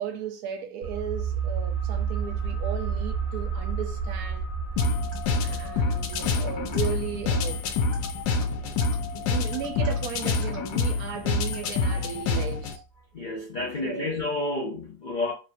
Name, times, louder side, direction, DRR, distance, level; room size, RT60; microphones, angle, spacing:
voice 1, 0.0-4.4 5.4-7.6 8.6-8.8 9.1-12.8 13.8-14.2, right 8 dB, 70° right, 1.1 m, -35 dB
sound 1, 0.8-12.2 12.5-12.6, right 6 dB, 55° left, 1.2 m, -33 dB
sound 2, 4.8-12.8, left 4 dB, 90° left, 1.2 m, -27 dB
sound 3, 5.1-5.2 6.1-6.3 6.7-6.9 7.9-8.4 8.8-8.9 9.5-10.0 10.4-10.6 11.5-11.7, equal, 20° right, 1.4 m, -45 dB
voice 2, 13.1-15.3, left 2 dB, 70° left, 0.4 m, -30 dB
2.9 x 2.4 x 4.2 m
omnidirectional pair, 1.7 m